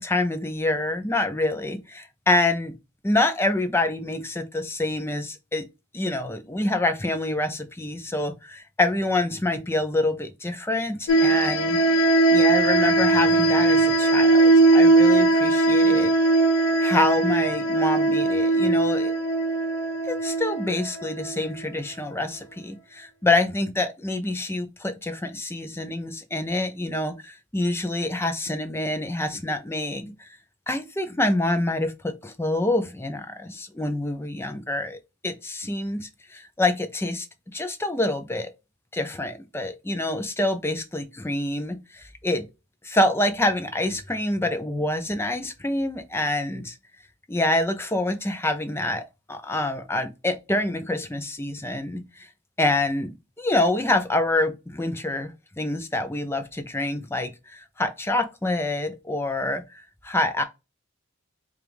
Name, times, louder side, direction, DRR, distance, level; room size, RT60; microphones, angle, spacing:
voice 1, 0.0-2.7 3.0-5.7 5.9-11.8 12.3-16.1 16.8-19.1 20.0-30.3 30.7-38.5 38.9-42.5 42.8-46.8 47.3-52.3 52.6-59.6 60.0-60.4, left 2 dB, 10° left, 0.5 m, -26 dB
sound 1, 11.1-21.5, right 2 dB, 80° left, 0.9 m, -19 dB
5.0 x 2.5 x 3.1 m
head